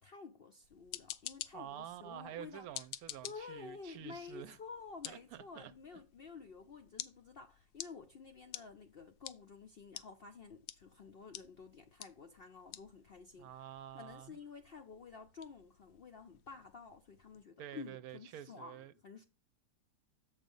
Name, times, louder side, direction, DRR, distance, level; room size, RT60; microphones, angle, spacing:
voice 1, 0.0-2.7 3.2-13.6 13.9-19.2, left 5 dB, 60° left, 0.6 m, -51 dB
sound 1, 0.6-17.4, left 12 dB, 85° left, 1.1 m, -52 dB
voice 2, 1.5-4.6 5.0-5.7 13.4-14.4 17.6-18.9, right 11 dB, 75° right, 1.0 m, -48 dB
7.3 x 5.2 x 5.3 m
omnidirectional pair, 1.7 m